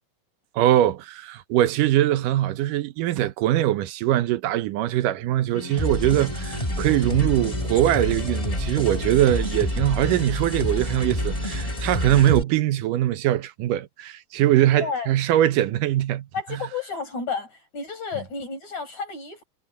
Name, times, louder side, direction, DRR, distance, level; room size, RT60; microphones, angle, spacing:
voice 1, 0.6-16.3, right 13 dB, 80° right, 2.4 m, -22 dB
sound 1, 5.5-12.3, equal, 25° left, 5.5 m, -35 dB
sound 2, 5.8-12.4, left 1 dB, 10° left, 4.8 m, -28 dB
voice 2, 14.8-15.1 16.3-19.5, left 5 dB, 60° left, 8.3 m, -31 dB
omnidirectional pair, 3.7 m